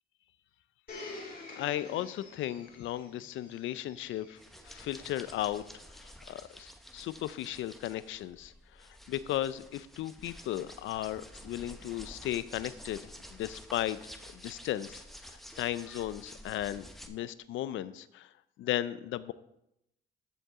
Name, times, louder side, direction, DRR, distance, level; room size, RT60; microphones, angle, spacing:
Domestic sounds home sounds, 0.9-5.7 6.5-6.6, left 2 dB, 50° left, 2.8 m, -49 dB
voice 1, 1.3-4.4 4.6-5.6 5.9-8.5 8.8-14.0 14.3-18.3 18.6-19.3, left 13 dB, 80° left, 16 dB, 0.5 m, -36 dB
sound 1, 4.4-17.1, equal, ahead, 1.0 m, -50 dB
14.5 x 5.3 x 3.7 m, 0.81 s
cardioid pair, 90°, 20 cm